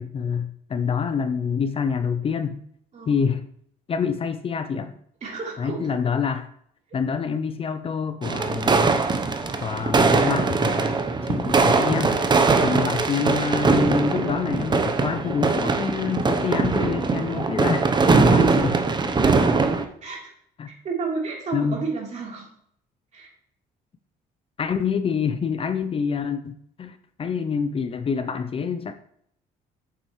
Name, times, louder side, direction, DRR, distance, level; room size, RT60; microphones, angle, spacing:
voice 1, 0.0-2.6 3.1-3.4 3.9-4.9 5.6-6.5 6.9-8.9 9.6-12.2 12.6-18.7 20.6-20.7 21.5-21.8 24.6-28.9, left 6 dB, 35° left, 10 dB, 0.6 m, -26 dB
voice 2, 5.2-5.8 12.6-12.8 18.3-18.6 19.2-19.6 20.0-20.3 20.8-22.5 23.1-23.3, right 4 dB, 45° right, -2 dB, 3.4 m, -31 dB
sound 1, 8.2-19.8, right 4 dB, 25° right, 0.8 m, -21 dB
8.3 x 7.4 x 3.2 m, 0.67 s
cardioid pair, 110°, 17 cm